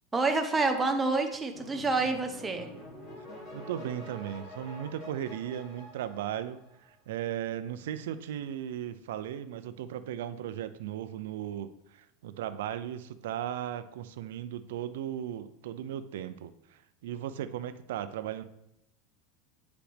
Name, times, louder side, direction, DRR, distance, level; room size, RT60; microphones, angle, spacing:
voice 1, 0.1-2.7, right 3 dB, 10° right, 5 dB, 0.7 m, -28 dB
sound 1, 1.5-7.0, left 1 dB, 40° left, 3.0 m, -47 dB
voice 2, 3.5-11.7 12.0-16.5 17.0-18.4, right 10 dB, 85° right, 12 dB, 0.5 m, -36 dB
9.0 x 5.0 x 3.4 m, 0.85 s
supercardioid pair, 155°, 0 cm